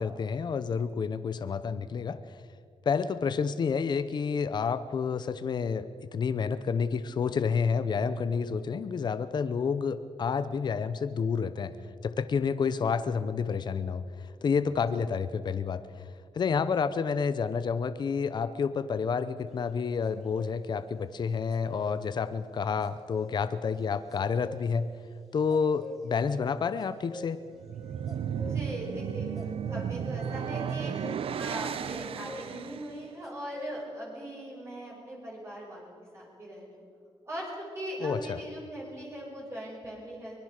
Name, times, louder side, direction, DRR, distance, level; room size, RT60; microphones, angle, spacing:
voice 1, 0.0-2.2 2.8-11.7 12.0-15.8 16.3-24.9 25.3-27.4 38.0-38.4, left 6 dB, 45° left, 12 dB, 0.8 m, -29 dB
sound 1, 20.0-20.5 21.5-22.0 22.8-23.3 24.1-24.6 25.4-26.1 26.8-27.6 28.1-28.6 29.3-30.1 30.4-32.5 33.2-33.8, left 1 dB, ahead, 3.4 m, -45 dB
sound 2, 27.5-32.9, right 8 dB, 65° right, 0.8 m, -34 dB
voice 2, 28.5-30.9 31.4-36.8 37.3-40.4, equal, 25° right, -3 dB, 5.7 m, -40 dB
24.0 x 20.5 x 6.6 m, 2.4 s
wide cardioid pair, 140°, 10 cm